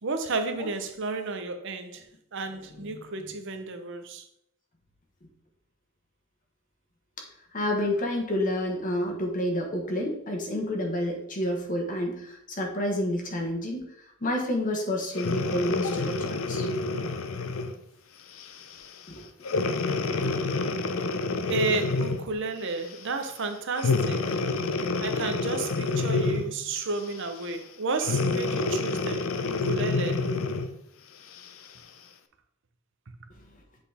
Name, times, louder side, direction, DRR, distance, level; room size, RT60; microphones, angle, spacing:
voice 1, 0.0-2.0 2.3-4.3 21.5-24.4 25.0-30.3, right 3 dB, 65° right, 0.8 m, -32 dB
voice 2, 2.7-3.3 7.2-7.3 7.5-13.9 14.2-16.7 19.1-19.3 20.0-20.3, left 1 dB, 40° left, 1.2 m, -29 dB
Breathing, 15.1-17.8 18.4-18.6 19.4-22.3 23.8-26.6 28.0-30.7 31.4-31.5, left 3 dB, 80° left, 0.6 m, -28 dB
7.9 x 4.2 x 3.4 m
head